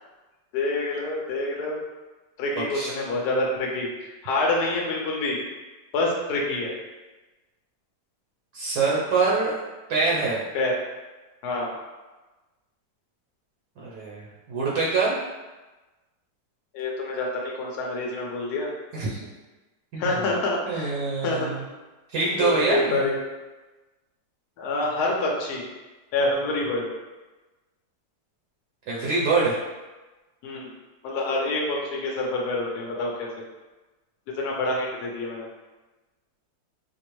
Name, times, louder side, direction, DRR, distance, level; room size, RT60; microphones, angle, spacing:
voice 1, 0.5-1.8 2.4-5.4 5.9-6.7 10.5-10.7 11.4-11.7 16.7-18.7 20.0-21.5 22.3-23.2 24.6-25.6 26.1-26.9 30.4-30.7 31.0-33.3 34.3-35.5, left 2 dB, 65° left, -2 dB, 1.2 m, -27 dB
voice 2, 2.6-2.9 8.5-9.6 9.9-10.4 13.8-15.2 18.9-19.2 19.9-20.2 20.7-21.6 22.1-23.1 28.9-29.5, right 3 dB, 70° right, -6 dB, 1.1 m, -25 dB
5.1 x 2.1 x 3.0 m, 1.2 s
omnidirectional pair, 2.0 m